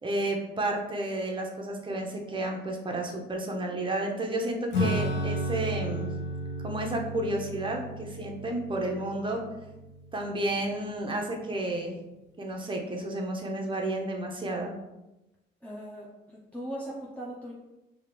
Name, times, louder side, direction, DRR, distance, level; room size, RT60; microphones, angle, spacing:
voice 1, 0.0-6.1 6.6-9.4 10.1-12.0 12.4-14.8, right 1 dB, 25° right, 1 dB, 0.9 m, -31 dB
Acoustic guitar / Strum, 4.7-10.6, equal, 70° left, 1.4 m, -33 dB
voice 2, 15.6-17.5, right 1 dB, 5° left, -6 dB, 0.8 m, -39 dB
5.0 x 2.9 x 3.4 m, 1.0 s
cardioid pair, 90°, 20 cm